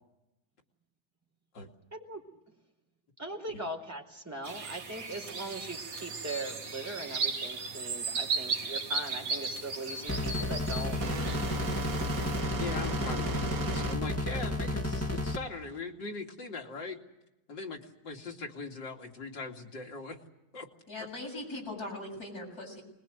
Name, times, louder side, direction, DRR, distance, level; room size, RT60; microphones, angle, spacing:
voice 1, 1.9-2.2 3.2-11.0, right 2 dB, 10° right, 2 dB, 4.6 m, -40 dB
sound 1, 4.4-12.4, right 4 dB, 70° right, 2.4 m, -36 dB
sound 2, 9.9-15.8, right 4 dB, 50° right, 1.7 m, -39 dB
sound 3, 10.1-15.4, left 1 dB, 10° left, 1.5 m, -32 dB
voice 2, 12.5-17.0 17.5-20.2 20.5-20.7 21.0-21.1, left 3 dB, 75° left, 0 dB, 3.3 m, -40 dB
voice 3, 20.9-22.8, left 2 dB, 55° left, 0 dB, 8.2 m, -40 dB
26.5 x 21.0 x 8.0 m, 0.90 s
omnidirectional pair, 2.0 m